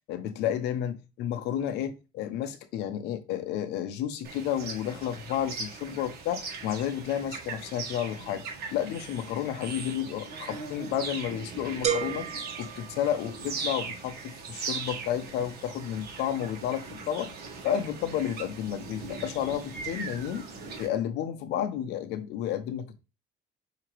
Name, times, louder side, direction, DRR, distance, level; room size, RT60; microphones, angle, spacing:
voice 1, 0.1-12.3 12.6-17.3 17.6-20.5 20.8-23.0, left 10 dB, 85° left, 0.7 m, -31 dB
sound 1, 4.2-20.9, right 4 dB, 70° right, 1.5 m, -40 dB
sound 2, 11.8-13.7, right 8 dB, 40° right, 0.9 m, -33 dB
5.9 x 2.8 x 3.0 m
cardioid pair, 110°, 17 cm